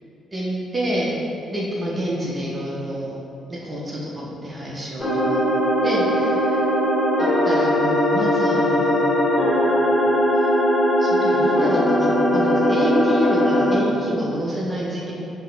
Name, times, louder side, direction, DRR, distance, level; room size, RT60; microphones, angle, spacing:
voice 1, 0.3-1.2 1.5-3.2 3.5-5.4 5.8-6.6 7.2-9.5 10.3-10.5 11.0-15.1, equal, 25° right, -4 dB, 0.7 m, -28 dB
sound 1, 5.0-13.7, equal, 15° left, 1.1 m, -19 dB
5.3 x 2.0 x 2.5 m, 2.7 s
hypercardioid pair, 40°, 0 cm